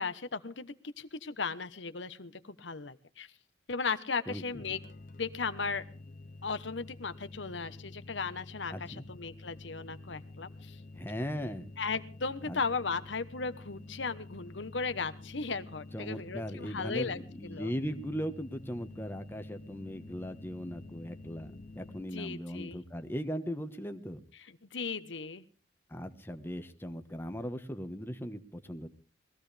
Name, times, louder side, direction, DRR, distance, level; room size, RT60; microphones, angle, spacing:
voice 1, 0.0-3.3 3.7-4.8 5.1-5.8 6.4-10.8 11.8-17.7 22.1-22.8 24.4-25.4, left 4 dB, 80° left, 12 dB, 1.1 m, -36 dB
sound 1, 4.6-22.0, left 2 dB, 45° left, 0.7 m, -49 dB
voice 2, 8.7-9.0 11.0-11.6 12.5-12.6 15.9-24.2 25.9-28.9, equal, 10° left, 7 dB, 1.2 m, -38 dB
21.5 x 15.5 x 3.4 m, 0.37 s
head